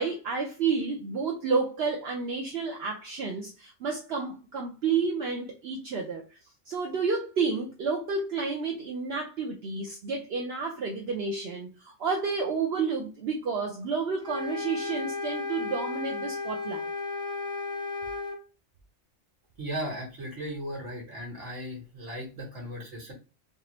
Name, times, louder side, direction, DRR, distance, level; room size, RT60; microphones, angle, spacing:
voice 1, 0.0-6.4 6.7-16.9, right 5 dB, 65° right, 0.9 m, -30 dB
sound 1, 14.2-18.4, left 3 dB, 5° left, 0.5 m, -34 dB
voice 2, 19.6-23.1, equal, 85° right, 1.9 m, -36 dB
3.7 x 3.4 x 2.8 m
omnidirectional pair, 1.2 m